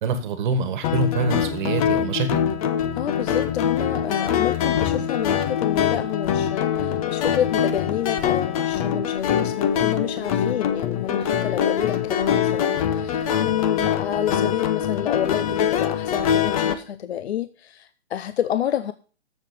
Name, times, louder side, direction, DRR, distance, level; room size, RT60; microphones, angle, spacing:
voice 1, 0.0-2.4, right 3 dB, 45° right, 1.6 m, -25 dB
sound 1, 0.8-16.7, left 9 dB, 30° left, 0.9 m, -23 dB
voice 2, 3.0-18.9, left 10 dB, 65° left, 0.7 m, -29 dB
7.2 x 6.6 x 6.7 m
hypercardioid pair, 145°, 34 cm